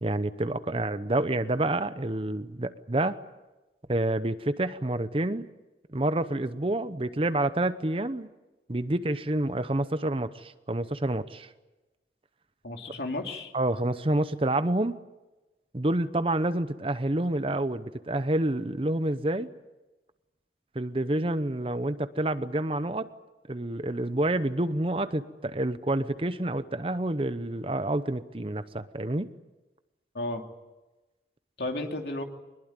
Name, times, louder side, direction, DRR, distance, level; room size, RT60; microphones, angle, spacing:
voice 1, 0.0-3.2 3.9-5.5 5.9-8.3 8.7-11.5 13.5-15.0 15.7-19.5 20.7-23.1 23.5-29.3, right 1 dB, 30° right, 13 dB, 0.8 m, -28 dB
voice 2, 12.6-13.5 30.1-30.4 31.6-32.2, left 2 dB, 65° left, 3 dB, 2.8 m, -33 dB
23.0 x 21.0 x 8.9 m, 1.1 s
head